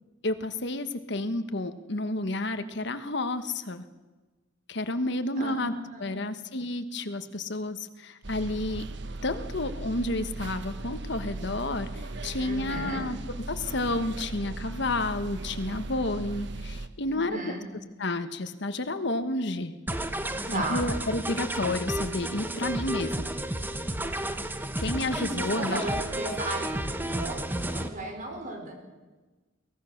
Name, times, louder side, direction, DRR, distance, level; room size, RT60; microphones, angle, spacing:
voice 1, 0.2-3.8 4.7-5.7 6.0-8.9 9.2-13.2 13.5-17.4 18.0-19.7 20.5-23.3 24.8-25.8, left 2 dB, 60° left, 10 dB, 1.3 m, -31 dB
voice 2, 5.4-6.4 12.4-13.0 17.1-17.6 20.5-20.9 25.1-27.4 27.7-28.8, right 1 dB, 40° right, 2 dB, 5.3 m, -35 dB
sound 1, 8.2-16.9, right 2 dB, 60° right, 1.2 m, -38 dB
sound 2, 19.9-27.9, right 1 dB, 10° right, 1.1 m, -32 dB
23.0 x 18.5 x 6.6 m, 1.2 s
head